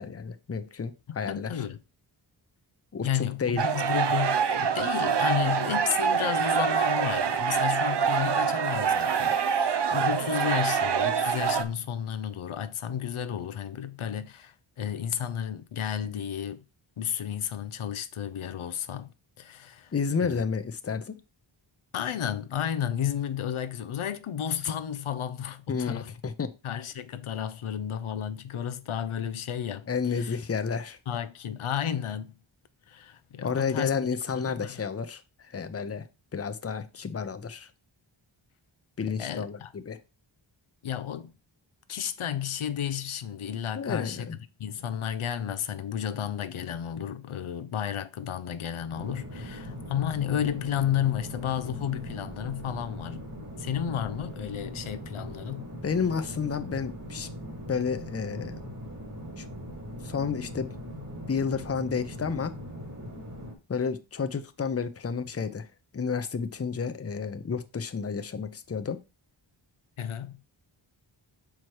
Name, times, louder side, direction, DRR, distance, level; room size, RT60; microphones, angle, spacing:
voice 1, 0.0-1.6 2.9-3.6 19.9-21.2 25.7-26.5 29.9-31.0 33.4-36.1 36.3-37.7 39.0-40.0 43.7-44.3 55.8-57.3 57.7-58.6 59.4-59.5 60.0-60.7 61.3-62.5 63.7-65.7 65.9-69.0, left 5 dB, 30° left, 0.7 m, -31 dB
voice 2, 1.1-1.8 3.0-16.6 17.0-19.9 20.2-20.4 21.9-26.1 26.6-30.4 31.1-32.3 32.9-34.0 34.3-34.8 39.2-39.7 40.8-41.3 41.9-53.2 53.6-55.7 70.0-70.4, left 9 dB, 90° left, 0.7 m, -32 dB
sound 1, 3.6-11.6, right 7 dB, 55° right, 0.8 m, -25 dB
sound 2, 48.9-63.5, equal, 35° right, 2.1 m, -40 dB
5.8 x 4.8 x 4.7 m
wide cardioid pair, 90°, 48 cm